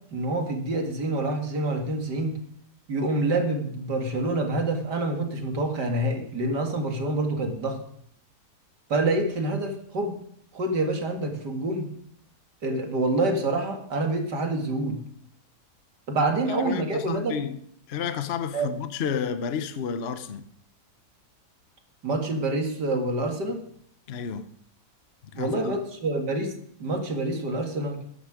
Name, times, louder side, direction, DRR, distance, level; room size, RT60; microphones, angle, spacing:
voice 1, 0.1-2.4 2.9-7.8 8.9-10.2 10.5-11.9 12.6-15.0 16.1-17.4 18.5-18.7 22.0-23.6 25.3-26.5 26.8-28.0, right 2 dB, 80° right, 2.6 m, -27 dB
voice 2, 16.6-17.6 17.9-20.4 24.1-24.5 25.4-25.8, left 7 dB, 50° left, 0.9 m, -31 dB
13.5 x 10.5 x 5.0 m
omnidirectional pair, 1.8 m